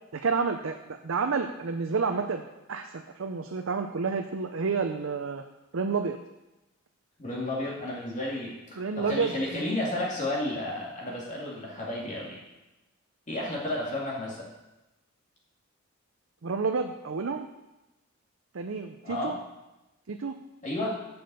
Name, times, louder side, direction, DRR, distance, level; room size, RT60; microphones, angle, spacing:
voice 1, 0.1-2.4 2.7-5.4 5.7-6.2 8.8-9.7 16.4-17.5 18.5-19.4 20.1-20.3, right 5 dB, 70° right, 5 dB, 0.6 m, -30 dB
voice 2, 7.2-12.4 13.3-14.5 19.0-19.4 20.6-21.0, left 1 dB, 35° left, -4 dB, 2.3 m, -32 dB
7.7 x 7.1 x 6.8 m, 0.98 s
head